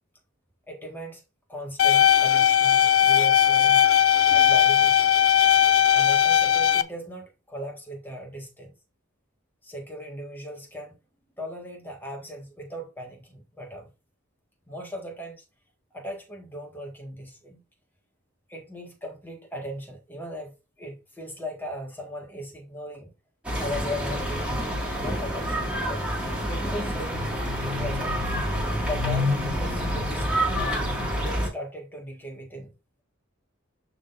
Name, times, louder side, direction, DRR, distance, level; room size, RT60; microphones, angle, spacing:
voice 1, 0.7-1.2 1.5-3.9 4.3-5.1 5.9-8.7 9.6-11.0 11.4-13.9 14.7-15.4 15.9-17.6 18.5-20.5 20.8-23.1 23.6-24.6 24.9-26.1 26.5-27.3 27.6-28.2 28.8-30.3 30.5-30.9 31.2-32.7, equal, 10° left, 1.7 m, -38 dB
sound 1, 1.8-6.8, left 9 dB, 80° left, 0.6 m, -18 dB
sound 2, 23.4-31.5, equal, 5° right, 2.1 m, -27 dB
11.5 x 3.9 x 2.6 m
head